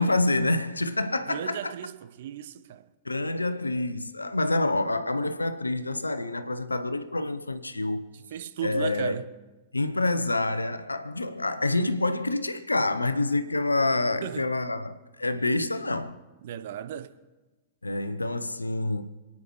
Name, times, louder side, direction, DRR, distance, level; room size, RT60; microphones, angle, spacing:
voice 1, 0.0-1.7 3.0-8.0 8.6-9.2 9.7-16.2 17.8-19.0, left 2 dB, 85° left, 0.7 m, -27 dB
voice 2, 1.3-2.9 8.3-9.3 14.2-14.5 16.4-17.1, right 10 dB, 55° right, 0.8 m, -35 dB
27.5 x 9.6 x 3.1 m
figure-of-eight pair, 95°, 0 cm